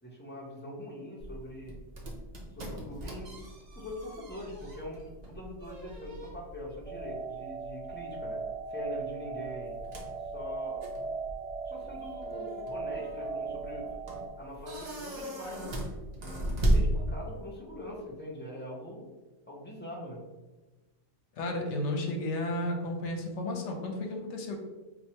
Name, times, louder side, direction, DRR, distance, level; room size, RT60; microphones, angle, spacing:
voice 1, 0.0-1.8 2.5-3.5 3.7-8.4 8.7-9.8 10.2-10.8 11.6-13.9 14.4-19.0 19.5-20.2, left 1 dB, 15° left, -6 dB, 0.4 m, -43 dB
sound 1, 1.2-17.6, right 1 dB, 50° right, 0.5 m, -36 dB
sound 2, 6.9-14.3, right 4 dB, 70° right, 0.9 m, -38 dB
voice 2, 21.4-24.6, left 1 dB, 70° left, 2 dB, 0.9 m, -33 dB
4.4 x 2.3 x 2.8 m, 1.2 s
omnidirectional pair, 1.3 m